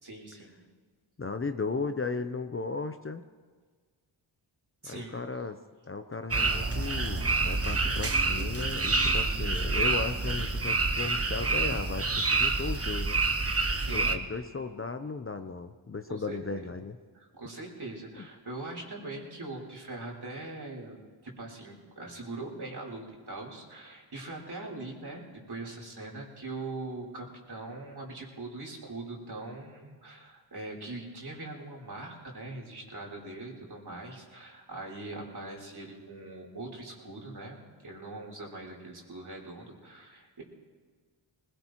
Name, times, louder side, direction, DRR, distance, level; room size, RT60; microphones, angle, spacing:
voice 1, 0.0-0.6 4.8-5.2 13.7-14.2 16.1-16.7 17.1-40.4, right 2 dB, 55° right, -2 dB, 3.8 m, -42 dB
voice 2, 1.2-3.2 4.8-5.6 5.9-13.2 13.9-17.0 18.2-18.3, left 4 dB, 25° left, 8 dB, 0.7 m, -35 dB
sound 1, 6.3-14.2, right 3 dB, 30° right, 1.2 m, -28 dB
20.0 x 17.5 x 3.1 m, 1.5 s
cardioid pair, 45°, 48 cm